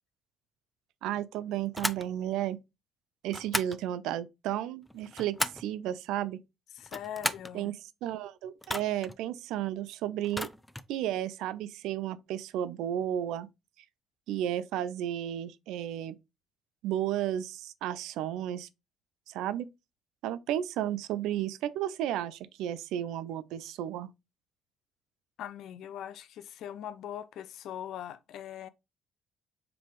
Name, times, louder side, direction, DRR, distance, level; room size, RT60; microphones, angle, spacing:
voice 1, 1.0-2.6 3.2-6.4 7.5-10.5 10.9-13.5 14.3-16.2 16.8-18.7 19.3-19.7 20.2-24.1, right 11 dB, 80° right, 0.4 m, -33 dB
sound 1, 1.7-2.1 3.3-3.8 4.9-5.7 6.8-7.5 8.6-9.1 10.2-10.9, left 1 dB, 5° left, 0.4 m, -34 dB
voice 2, 6.7-7.7 25.4-28.7, left 10 dB, 70° left, 0.4 m, -41 dB
4.8 x 3.5 x 3.1 m
supercardioid pair, 60°, 0 cm